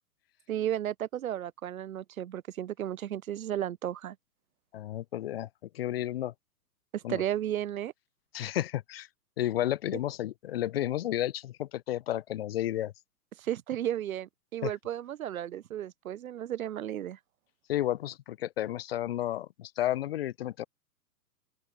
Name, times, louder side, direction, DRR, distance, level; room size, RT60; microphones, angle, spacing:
voice 1, 0.5-4.2 6.9-7.9 13.4-17.2, right 11 dB, 60° right, 0.7 m, -34 dB
voice 2, 4.7-5.5 5.7-6.3 7.0-7.2 8.3-9.1 9.4-12.9 14.6-14.7 17.7-20.6, left 13 dB, 35° left, 0.9 m, -32 dB
open air
figure-of-eight pair, 115°, 49 cm